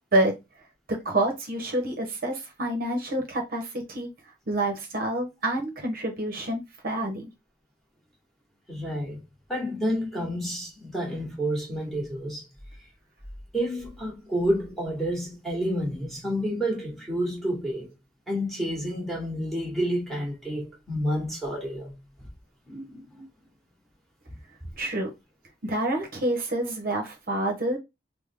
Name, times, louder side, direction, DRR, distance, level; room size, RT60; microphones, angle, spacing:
voice 1, 0.9-4.1 4.5-7.3 24.8-25.1 25.6-27.8, right 1 dB, 50° right, 0.8 m, -28 dB
voice 2, 8.7-9.2 9.5-12.4 13.5-17.9 18.3-21.9 22.7-23.2, equal, ahead, 1.2 m, -29 dB
3.5 x 2.1 x 3.4 m
head